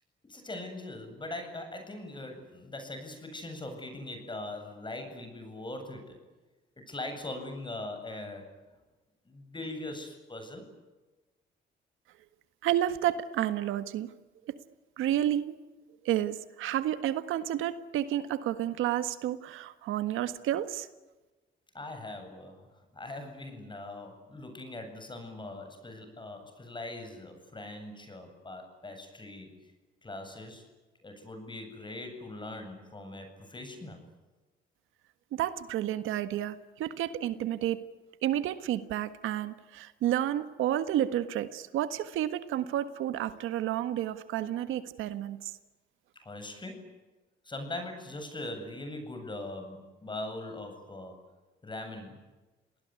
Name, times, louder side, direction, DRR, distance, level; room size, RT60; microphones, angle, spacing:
voice 1, 0.3-6.2 6.8-8.5 9.2-10.6 21.7-29.5 30.0-30.6 31.0-34.0 46.1-46.9 47.4-51.2 51.6-52.2, left 2 dB, 25° left, 6 dB, 8.0 m, -41 dB
voice 2, 12.6-14.1 14.5-14.6 15.0-15.6 16.0-20.9 35.3-37.8 38.2-45.5, right 12 dB, 90° right, 12 dB, 1.6 m, -30 dB
28.0 x 19.5 x 9.7 m, 1.2 s
cardioid pair, 90°, 20 cm